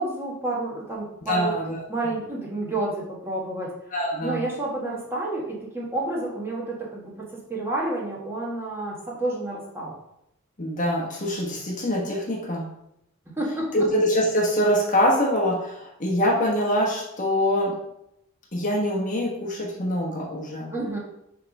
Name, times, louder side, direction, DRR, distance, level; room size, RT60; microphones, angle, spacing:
voice 1, 0.0-1.5 1.9-3.7 4.2-9.9 13.4-13.7 20.7-21.0, right 2 dB, 10° right, -5 dB, 1.5 m, -30 dB
voice 2, 1.3-1.8 3.9-4.4 10.6-12.7 13.7-17.8 18.5-20.7, equal, 40° left, -2 dB, 1.2 m, -24 dB
6.7 x 3.5 x 5.3 m, 0.80 s
head